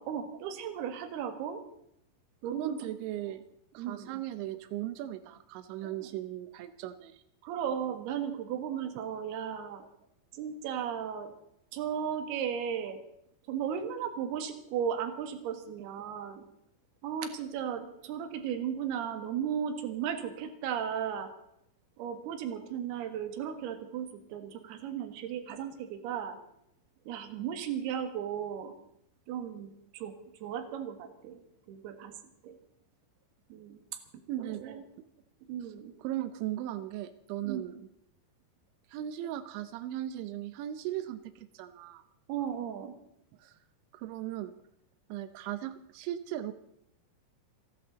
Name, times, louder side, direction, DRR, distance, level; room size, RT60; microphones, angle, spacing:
voice 1, 0.0-1.6 2.4-3.0 3.8-4.2 5.8-6.1 7.4-9.8 10.3-11.3 11.7-13.0 13.5-16.4 17.0-21.3 22.0-26.4 27.1-28.7 29.3-30.1 30.4-31.4 31.7-32.1 32.4-32.6 33.5-33.8 34.3-34.8 35.5-35.9 37.4-37.8 42.3-43.0, right 8 dB, 70° right, 7 dB, 3.5 m, -35 dB
voice 2, 2.5-3.4 3.7-7.2 34.3-34.6 36.0-37.9 38.9-42.0 43.4-43.6 43.9-44.5 45.1-46.5, right 12 dB, 90° right, 11 dB, 3.1 m, -37 dB
28.5 x 11.5 x 3.9 m, 0.77 s
omnidirectional pair, 5.1 m